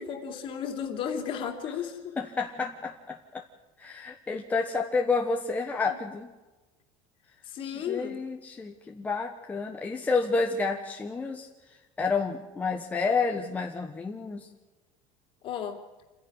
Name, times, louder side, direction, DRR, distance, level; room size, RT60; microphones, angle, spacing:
voice 1, 0.0-2.0 5.9-6.0 7.4-8.2 15.4-15.8, left 8 dB, 40° left, 5 dB, 2.8 m, -34 dB
voice 2, 2.2-3.4 3.8-6.3 7.6-11.5 12.0-14.5, left 4 dB, 10° left, 1 dB, 1.2 m, -30 dB
28.0 x 11.0 x 9.9 m, 1.1 s
cardioid pair, 165°, 13 cm